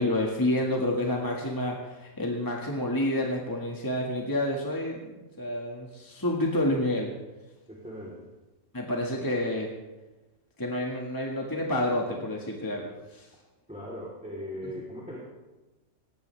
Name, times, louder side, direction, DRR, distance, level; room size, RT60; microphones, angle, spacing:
voice 1, 0.0-5.0 5.4-7.1 8.7-9.7 10.6-13.3, left 1 dB, 15° left, -1 dB, 1.8 m, -29 dB
voice 2, 7.7-8.3 13.7-15.2, equal, 5° right, -5 dB, 3.4 m, -39 dB
19.0 x 18.0 x 3.4 m, 1.1 s
omnidirectional pair, 1.4 m